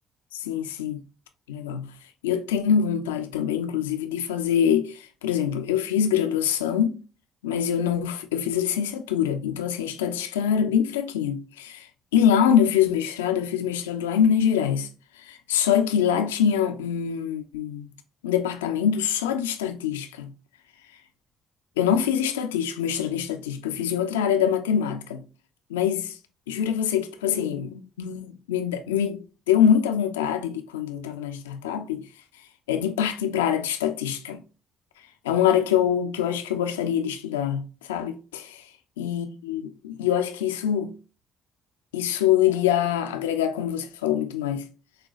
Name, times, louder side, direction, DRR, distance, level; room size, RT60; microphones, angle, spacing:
voice 1, 0.3-1.0 1.5-1.9 2.2-6.9 7.4-11.9 12.1-14.9 15.2-17.9 18.2-20.3 21.8-25.2 25.7-26.2 26.5-32.1 32.7-34.4 35.2-38.6 39.0-40.9 41.9-44.7, left 9 dB, 85° left, 0.4 m, -24 dB
6.2 x 2.3 x 2.3 m
hypercardioid pair, 50°, 0 cm